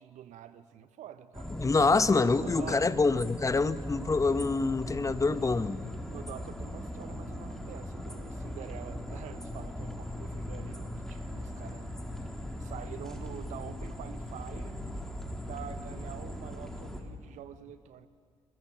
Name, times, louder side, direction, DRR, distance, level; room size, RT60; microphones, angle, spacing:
voice 1, 0.0-1.6 2.4-3.0 6.1-12.0 12.6-14.8 15.4-18.1, right 10 dB, 60° right, 12 dB, 1.1 m, -46 dB
sound 1, 1.3-17.0, left 1 dB, 5° left, 4.3 m, -39 dB
voice 2, 1.6-5.8, left 3 dB, 25° left, 14 dB, 1.0 m, -26 dB
27.5 x 22.0 x 7.5 m, 2.1 s
hypercardioid pair, 45°, 14 cm